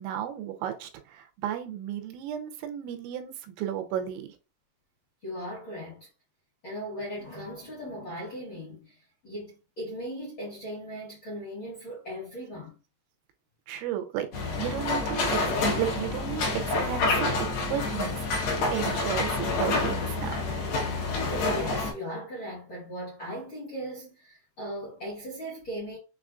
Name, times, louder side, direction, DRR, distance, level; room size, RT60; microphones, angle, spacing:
voice 1, 0.0-4.3 13.7-14.3 14.6-17.4 17.6-18.3 18.6-20.4, right 10 dB, 90° right, 3.0 m, -33 dB
voice 2, 5.2-6.1 6.6-9.0 9.2-12.7 21.3-26.0, equal, 45° left, 1.6 m, -38 dB
sound 1, 14.3-21.9, left 3 dB, 65° left, 2.5 m, -28 dB
6.8 x 2.3 x 2.5 m
omnidirectional pair, 5.1 m